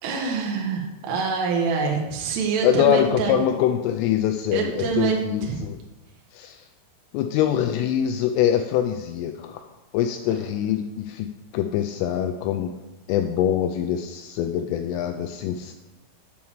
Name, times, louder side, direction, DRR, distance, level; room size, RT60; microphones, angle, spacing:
voice 1, 0.0-3.4 4.5-5.7 10.3-10.4, right 5 dB, 70° right, 0 dB, 2.8 m, -26 dB
voice 2, 2.6-5.8 6.3-6.6 7.1-9.6 9.9-11.3 11.5-12.7 13.1-15.7, left 10 dB, 85° left, 6 dB, 3.0 m, -24 dB
8.3 x 4.6 x 7.2 m, 1.1 s
omnidirectional pair, 5.9 m